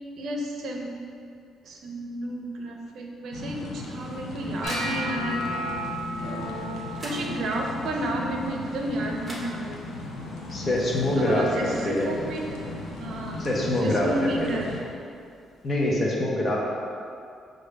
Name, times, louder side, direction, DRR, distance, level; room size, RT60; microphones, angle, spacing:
voice 1, 0.2-0.9 1.6-5.7 6.2-9.8 11.2-12.6 13.0-14.7, right 1 dB, 70° right, 1 dB, 0.5 m, -32 dB
sound 1, 3.3-14.8, left 2 dB, 85° left, 0.7 m, -37 dB
sound 2, 3.8-5.4 6.6-6.7 7.0-7.8 8.9-9.0 9.2-10.1, right 1 dB, 20° right, 0.9 m, -41 dB
sound 3, 4.6-10.7 11.0-11.5 11.9-12.4 13.0-13.2 15.0-15.1, left 1 dB, 55° left, 1.5 m, -36 dB
voice 2, 10.5-12.1 13.4-14.3 15.6-16.6, left 1 dB, 40° left, -3 dB, 0.9 m, -25 dB
6.4 x 2.6 x 3.3 m, 2.4 s
cardioid pair, 90°, 0 cm